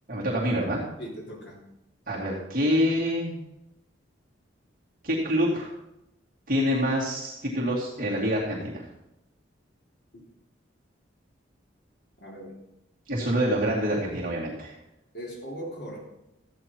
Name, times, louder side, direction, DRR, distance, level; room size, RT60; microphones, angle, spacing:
voice 1, 0.1-0.8 2.1-3.3 5.0-5.7 6.5-8.8 13.1-14.8, equal, 45° right, -6 dB, 2.5 m, -26 dB
voice 2, 1.0-1.6 12.2-12.5 15.1-16.0, equal, 60° left, -2 dB, 3.4 m, -38 dB
13.5 x 9.0 x 4.6 m, 0.89 s
head